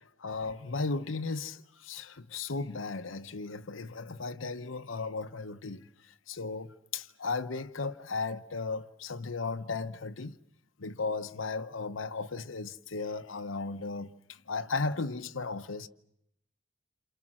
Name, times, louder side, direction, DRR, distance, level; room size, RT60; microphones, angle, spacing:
voice 1, 0.2-10.4 10.8-15.9, left 4 dB, 75° left, 0.9 m, -36 dB
28.5 x 27.5 x 6.2 m
head